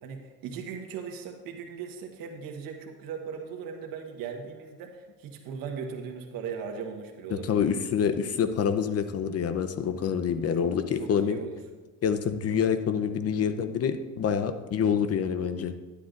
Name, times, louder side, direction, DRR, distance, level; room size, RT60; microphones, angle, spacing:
voice 1, 0.0-7.9 10.6-10.7 11.0-11.6, right 6 dB, 80° right, 3 dB, 1.4 m, -38 dB
voice 2, 7.3-11.4 12.0-15.7, left 7 dB, 45° left, 10 dB, 0.8 m, -27 dB
11.5 x 9.9 x 2.6 m, 1.3 s
cardioid pair, 100°, 34 cm